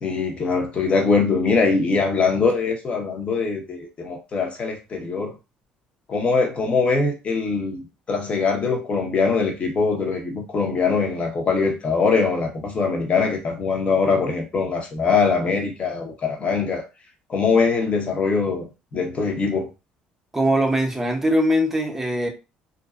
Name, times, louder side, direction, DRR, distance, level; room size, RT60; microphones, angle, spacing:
voice 1, 0.0-5.3 6.1-16.8 17.3-18.7 18.9-19.7, left 4 dB, 40° left, 1.0 m, -22 dB
voice 2, 20.3-22.3, equal, 10° right, 0.7 m, -21 dB
2.6 x 2.2 x 2.4 m
supercardioid pair, 80°, 3 cm